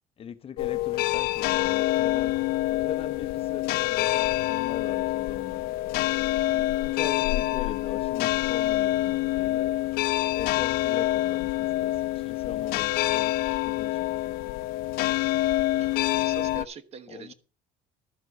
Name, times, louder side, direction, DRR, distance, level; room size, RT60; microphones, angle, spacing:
voice 1, 0.2-2.3 2.7-5.7 6.8-9.7 10.3-14.4 17.1-17.3, left 8 dB, 35° left, 0.8 m, -40 dB
sound 1, 0.6-16.6, left 17 dB, 75° left, 0.5 m, -26 dB
voice 2, 15.8-17.3, right 4 dB, 40° right, 1.1 m, -43 dB
12.0 x 7.4 x 5.2 m
cardioid pair, 120°, 16 cm